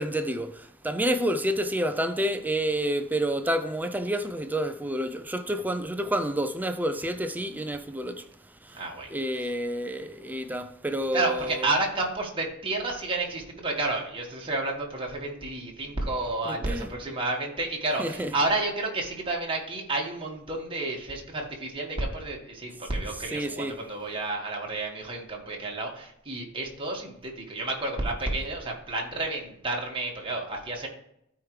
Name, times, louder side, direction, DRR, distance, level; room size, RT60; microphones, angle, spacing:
voice 1, 0.0-8.3 8.6-8.8 9.1-11.7 16.4-16.9 18.0-18.3 23.3-23.8, right 1 dB, 10° right, 0.4 m, -29 dB
voice 2, 8.7-9.1 11.1-30.9, right 2 dB, 25° right, 1.7 m, -31 dB
13.0 x 4.8 x 3.2 m
head